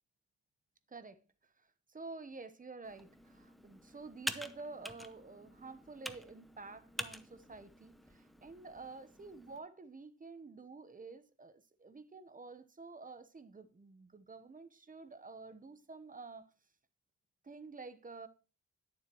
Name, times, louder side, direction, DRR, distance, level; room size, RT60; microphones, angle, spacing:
voice 1, 0.9-1.2 1.6-16.5 17.4-18.3, right 3 dB, 25° right, 0.9 m, -50 dB
Computer keyboard, 2.8-9.6, equal, ahead, 0.7 m, -47 dB
11.0 x 7.2 x 3.0 m
cardioid pair, 95°, 31 cm